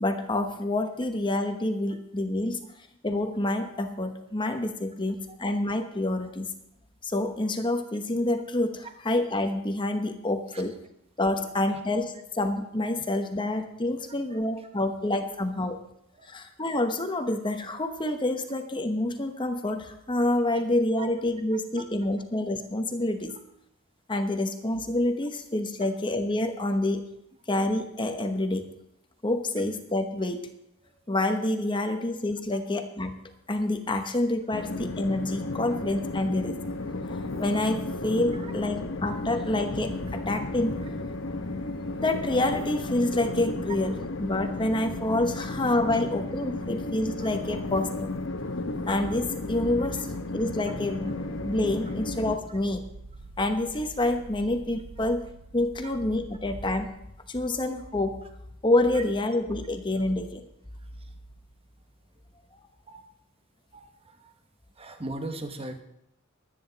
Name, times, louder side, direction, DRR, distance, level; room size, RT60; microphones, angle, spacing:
voice 1, 0.0-2.6 3.0-6.5 7.0-10.8 11.2-15.8 16.2-23.4 24.1-27.0 27.5-28.7 29.2-30.5 31.1-33.2 33.5-36.6 37.4-40.8 42.0-48.1 48.9-51.1 51.4-52.9 53.4-55.2 55.5-56.9 57.3-58.2 58.6-60.4, left 1 dB, 20° left, 7 dB, 1.0 m, -27 dB
voice 2, 14.0-14.7 16.2-16.4 21.0-21.1 21.8-21.9 32.5-32.6 38.3-38.5 47.2-47.3 55.8-55.9 57.5-57.6 58.9-59.0 61.0-61.1 62.9-63.1 63.7-64.3 64.8-65.8, right 2 dB, 25° right, 6 dB, 1.2 m, -40 dB
Train, 34.5-52.4, left 2 dB, 60° left, 1.1 m, -34 dB
sound 1, 46.9-56.9, right 2 dB, 55° right, 1.2 m, -49 dB
23.0 x 9.4 x 4.0 m, 0.81 s
head